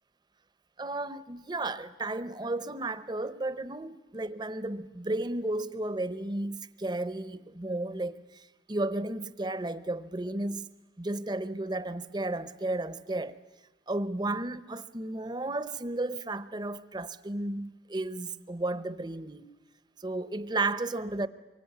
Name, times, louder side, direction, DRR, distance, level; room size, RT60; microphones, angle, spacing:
voice 1, 0.8-10.7 11.0-13.4 13.9-19.5 20.0-21.3, right 2 dB, 25° right, 0.8 m, -33 dB
25.5 x 23.0 x 9.4 m
head